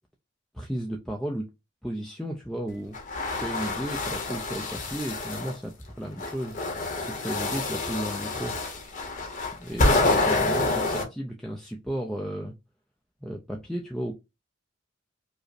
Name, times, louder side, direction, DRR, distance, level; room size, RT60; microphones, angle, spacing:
voice 1, 0.5-1.5 1.8-3.0 3.4-6.6 7.0-8.6 9.6-12.5 13.2-14.1, equal, ahead, 0.3 m, -34 dB
sound 1, 2.9-5.5 6.2-11.0, left 2 dB, 40° left, 0.8 m, -27 dB
4.8 x 2.0 x 2.5 m
head